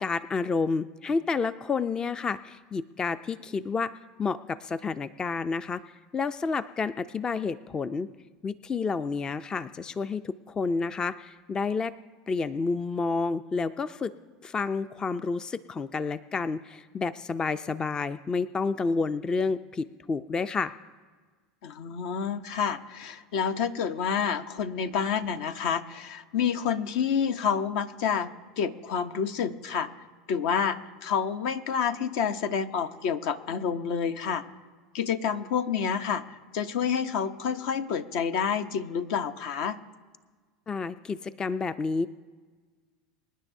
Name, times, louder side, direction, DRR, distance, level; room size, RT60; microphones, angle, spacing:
voice 1, 0.0-5.8 6.1-8.1 8.4-11.9 12.3-14.1 14.4-20.7 40.7-42.1, left 4 dB, 25° left, 14 dB, 0.4 m, -30 dB
voice 2, 21.6-28.3 28.6-29.9 30.3-34.4 34.9-36.2 36.5-39.8, left 7 dB, 65° left, 10 dB, 0.7 m, -28 dB
25.5 x 10.0 x 2.7 m, 1.5 s
hypercardioid pair, 90°, 3 cm